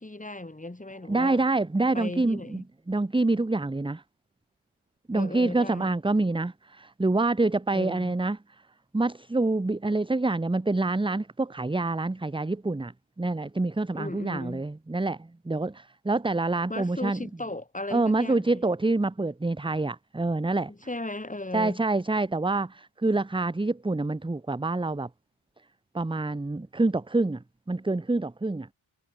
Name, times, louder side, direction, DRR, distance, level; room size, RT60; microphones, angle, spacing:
voice 1, 0.0-1.5 1.9-2.6 5.1-6.0 7.7-8.1 13.9-14.6 16.7-18.6 20.7-21.8, left 2 dB, 15° left, 4.7 m, -36 dB
voice 2, 1.1-4.0 5.1-8.4 8.9-12.9 13.2-15.2 15.5-17.2 17.9-20.7 21.5-25.1 25.9-27.4 27.7-28.7, right 2 dB, 10° right, 0.9 m, -26 dB
cardioid pair, 75°, 48 cm